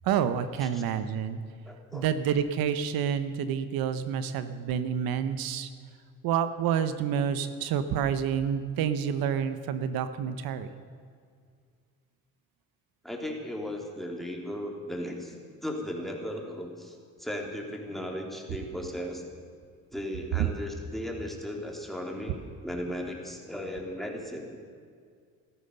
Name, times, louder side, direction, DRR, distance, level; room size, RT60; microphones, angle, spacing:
voice 1, 0.0-1.4 1.9-5.7 6.2-10.7, right 8 dB, 85° right, 11 dB, 0.9 m, -28 dB
voice 2, 1.7-2.1 13.0-15.3 15.6-19.2 19.9-24.6, left 1 dB, ahead, 0 dB, 3.5 m, -36 dB
15.5 x 13.0 x 6.8 m, 2.2 s
supercardioid pair, 70°, 34 cm